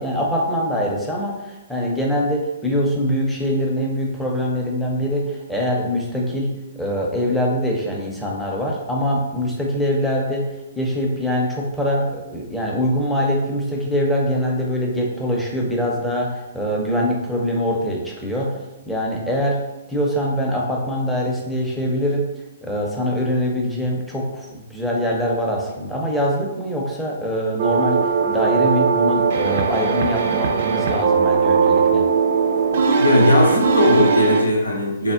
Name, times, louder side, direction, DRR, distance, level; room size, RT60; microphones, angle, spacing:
voice 1, 0.0-10.5 10.8-18.6 18.9-19.6 19.9-22.3 22.6-32.1, equal, 5° left, -3 dB, 0.5 m, -23 dB
sound 1, 27.6-34.4, right 5 dB, 55° right, 0.3 m, -19 dB
voice 2, 33.0-35.1, left 1 dB, 85° left, -1 dB, 0.7 m, -17 dB
3.4 x 2.1 x 2.4 m, 0.98 s
figure-of-eight pair, 125°, 0 cm